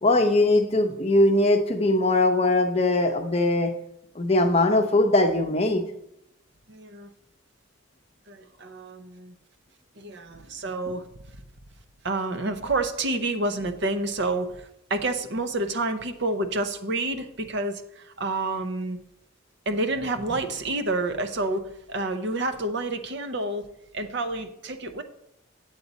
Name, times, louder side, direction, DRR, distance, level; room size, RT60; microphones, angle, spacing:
voice 1, 0.0-3.7 4.1-5.8, left 2 dB, 30° left, 5 dB, 0.7 m, -21 dB
voice 2, 6.7-7.1 8.3-9.3 10.0-11.1 12.0-19.0 19.7-23.7 23.9-25.0, right 2 dB, 50° right, 8 dB, 0.6 m, -29 dB
8.3 x 8.1 x 4.0 m, 0.81 s
head